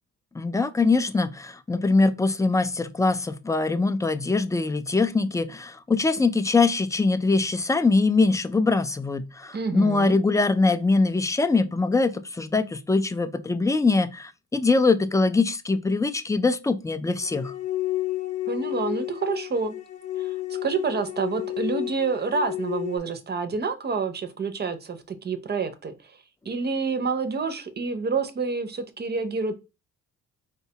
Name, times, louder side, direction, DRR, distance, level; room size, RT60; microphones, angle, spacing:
voice 1, 0.3-17.5, left 3 dB, 10° left, 0.3 m, -23 dB
voice 2, 9.5-10.2 18.5-19.7 20.2-25.9 26.5-29.5, right 4 dB, 35° right, 0.6 m, -28 dB
sound 1, 17.2-23.0, left 15 dB, 75° left, 0.8 m, -31 dB
4.6 x 2.2 x 2.8 m
cardioid pair, 90°, 30 cm